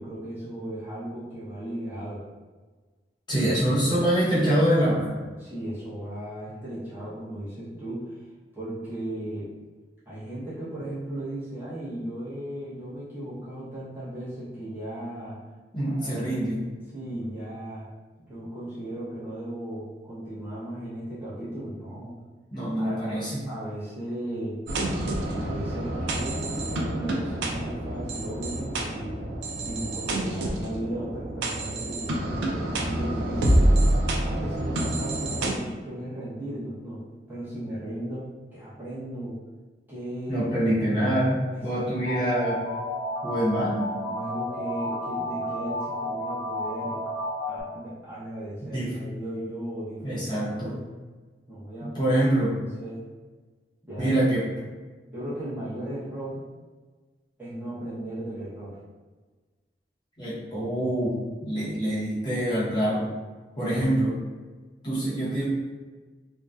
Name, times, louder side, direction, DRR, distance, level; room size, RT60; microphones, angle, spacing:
voice 1, 0.0-2.3 3.3-4.0 5.4-8.3 8.5-9.5 10.0-15.4 15.9-16.5 16.9-17.9 18.2-22.1 22.8-24.6 25.3-29.2 29.6-33.8 34.2-37.0 37.3-39.4 39.9-40.7 41.5-42.2 43.3-43.6 44.1-47.0 47.5-50.8 51.5-52.1 52.6-53.0 53.9-54.1 55.1-56.4 57.4-58.8, right 1 dB, 10° right, -12 dB, 0.8 m, -36 dB
voice 2, 3.3-5.2 15.7-16.6 22.5-23.4 40.3-42.6 43.2-43.9 48.7-49.0 50.0-50.8 51.8-52.6 54.0-54.5 60.2-63.1 63.6-64.2 64.8-65.5, right 1 dB, 25° left, -10 dB, 0.8 m, -25 dB
sound 1, 24.7-35.5, right 1 dB, 80° right, 0.4 m, -27 dB
sound 2, 42.0-47.6, left 1 dB, 30° right, 1.1 m, -31 dB
2.5 x 2.2 x 2.3 m, 1.3 s
head